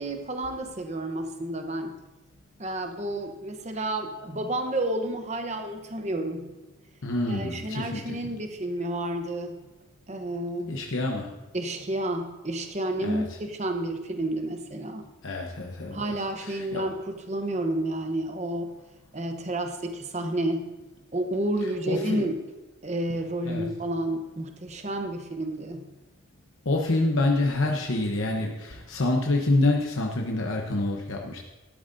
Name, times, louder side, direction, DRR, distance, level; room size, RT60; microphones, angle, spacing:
voice 1, 0.0-1.9 2.6-6.5 7.3-9.6 10.1-10.8 11.5-15.1 15.9-18.7 19.1-20.7 21.1-22.4 22.8-25.8, right 1 dB, 35° right, 5 dB, 0.9 m, -30 dB
voice 2, 7.0-8.2 10.7-11.3 13.0-13.2 15.2-16.1 16.4-16.8 21.9-22.3 23.4-23.7 26.7-31.4, left 2 dB, 70° left, 0 dB, 0.9 m, -27 dB
13.0 x 11.0 x 2.6 m, 1.1 s
head